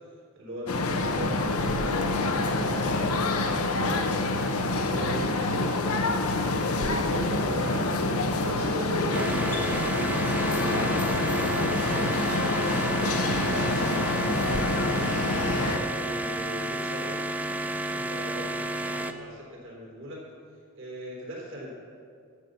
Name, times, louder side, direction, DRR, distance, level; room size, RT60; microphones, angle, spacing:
voice 1, 0.3-2.1 2.4-4.0 4.9-6.2 6.7-12.4 12.8-15.2 15.5-17.2 17.9-20.2 20.8-21.8, equal, 60° right, -2 dB, 3.9 m, -39 dB
sound 1, 0.7-15.8, left 2 dB, 85° left, 1.1 m, -26 dB
sound 2, 9.1-19.1, right 1 dB, 5° right, 0.5 m, -31 dB
13.0 x 10.5 x 6.9 m, 2.3 s
head